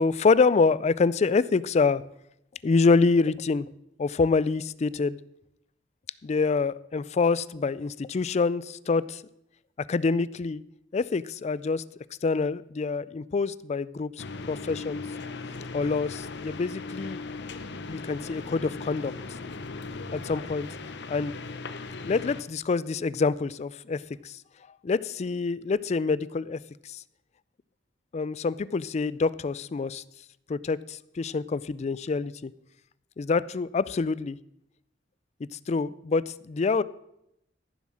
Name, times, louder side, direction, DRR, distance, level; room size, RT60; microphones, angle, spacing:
voice 1, 0.0-2.0 2.6-3.7 4.0-5.2 6.2-9.2 9.9-10.6 10.9-11.8 12.2-15.0 15.7-17.2 17.9-19.1 20.1-20.7 21.1-21.4 22.0-24.4 24.8-26.6 26.8-27.0 28.1-30.0 30.5-32.5 33.2-34.4 35.7-36.8, left 4 dB, 35° left, 19 dB, 0.3 m, -26 dB
sound 1, 14.2-22.4, left 3 dB, 65° left, 0.8 m, -38 dB
14.5 x 7.2 x 6.2 m, 0.79 s
head